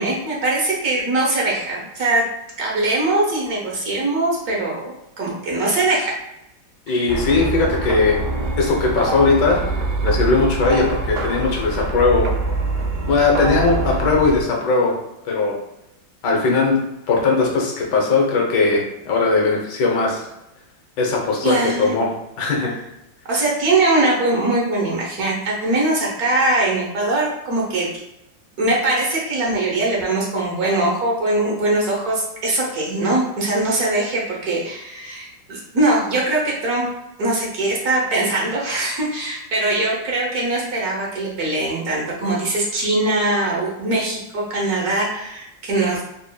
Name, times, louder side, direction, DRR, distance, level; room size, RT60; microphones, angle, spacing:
voice 1, 0.0-2.2 2.6-6.1 6.9-7.0 21.4-22.0 23.3-27.9 28.6-36.8 37.2-46.0, right 2 dB, 60° right, -3 dB, 1.3 m, -21 dB
voice 2, 6.9-8.2 8.6-9.6 10.0-12.3 13.1-15.0 15.2-15.6 16.2-16.8 17.1-20.3 21.0-22.1 22.4-22.7, left 3 dB, 70° left, -1 dB, 1.4 m, -19 dB
sound 1, 7.1-14.4, right 2 dB, 80° right, 0.6 m, -24 dB
4.1 x 3.4 x 2.2 m, 0.87 s
omnidirectional pair, 2.0 m